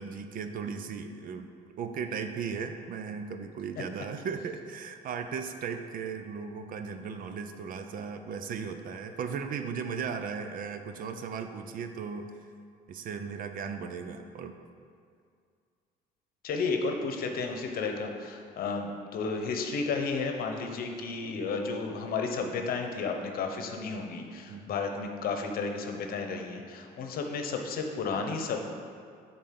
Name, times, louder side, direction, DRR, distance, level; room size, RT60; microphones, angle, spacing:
voice 1, 0.0-1.5 1.8-12.4 12.9-14.5 24.5-24.7, right 6 dB, 55° right, 7 dB, 0.6 m, -36 dB
voice 2, 16.4-28.7, left 4 dB, 60° left, 4 dB, 0.9 m, -32 dB
8.5 x 3.9 x 5.9 m, 2.2 s
cardioid pair, 110°, 17 cm